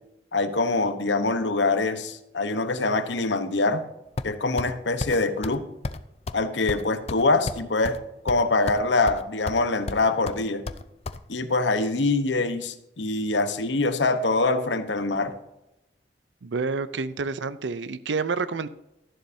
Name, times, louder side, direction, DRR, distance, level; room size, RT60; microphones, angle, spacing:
voice 1, 0.3-3.8 4.2-5.6 6.3-8.0 8.2-10.6 11.3-15.3, left 3 dB, 85° left, 1.0 m, -24 dB
sound 1, 4.2-4.7 5.0-5.2 5.4-5.6 5.8-6.0 6.3-6.4 6.7-8.0 8.3-8.8 9.1-9.6 9.9-11.2, left 3 dB, 35° left, 0.5 m, -32 dB
voice 2, 16.4-18.7, right 4 dB, 85° right, 0.6 m, -28 dB
12.5 x 11.0 x 2.7 m
head